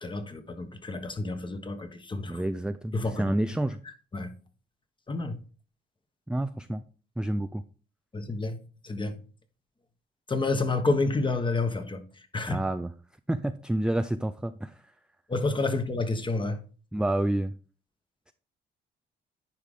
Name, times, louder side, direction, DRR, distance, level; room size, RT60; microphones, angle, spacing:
voice 1, 0.0-2.4 2.9-3.3 4.1-4.3 5.1-5.4 8.1-8.6 8.8-9.2 10.3-12.0 12.3-12.6 15.3-16.6, left 3 dB, 25° left, 1.3 m, -29 dB
voice 2, 2.3-3.8 6.3-6.8 7.2-7.6 12.5-12.9 13.3-14.7 16.9-17.5, right 1 dB, 5° right, 0.4 m, -29 dB
10.5 x 4.8 x 3.7 m
cardioid pair, 90°, 20 cm